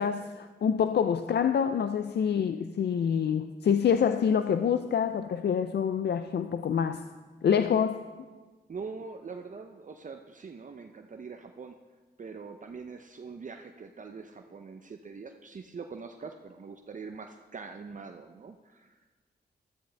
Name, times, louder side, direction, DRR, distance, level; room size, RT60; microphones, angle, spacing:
voice 1, 0.0-7.0 7.4-8.0, left 7 dB, 70° left, 9 dB, 0.5 m, -26 dB
voice 2, 8.7-11.8 12.2-19.2, right 5 dB, 45° right, 5 dB, 0.6 m, -43 dB
13.0 x 13.0 x 3.4 m, 1.3 s
cardioid pair, 70°, 18 cm